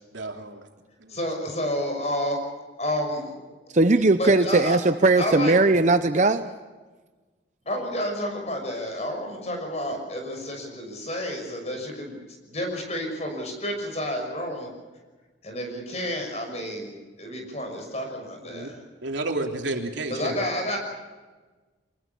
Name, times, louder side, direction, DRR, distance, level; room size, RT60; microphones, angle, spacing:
voice 1, 0.1-0.7 1.0-1.2 18.5-18.7 19.0-20.5, right 2 dB, 75° right, 3 dB, 3.3 m, -31 dB
voice 2, 1.1-2.5 2.8-3.4 4.2-4.8 5.2-5.5 7.7-12.2 12.5-14.7 15.4-16.9 17.2-18.8 20.1-20.8, equal, 35° left, 4 dB, 6.2 m, -30 dB
voice 3, 3.7-6.5, right 2 dB, 40° right, 10 dB, 0.8 m, -19 dB
24.5 x 21.0 x 7.1 m, 1.3 s
head